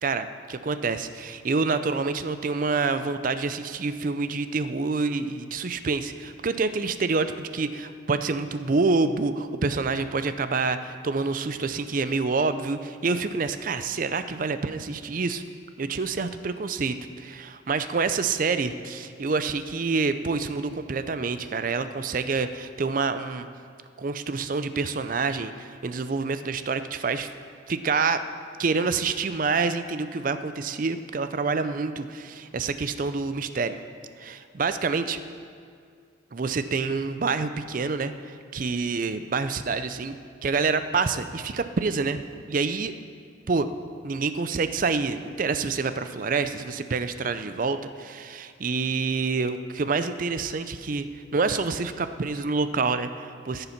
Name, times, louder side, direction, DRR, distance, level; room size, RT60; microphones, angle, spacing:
voice 1, 0.0-15.4 15.8-23.5 24.0-27.3 27.7-28.2 28.6-33.8 34.2-35.2 36.3-40.2 40.4-42.2 42.5-42.9 43.5-43.7 44.0-51.1 51.3-53.7, right 4 dB, 45° right, 11 dB, 0.5 m, -27 dB
14.5 x 6.8 x 5.8 m, 2.2 s
head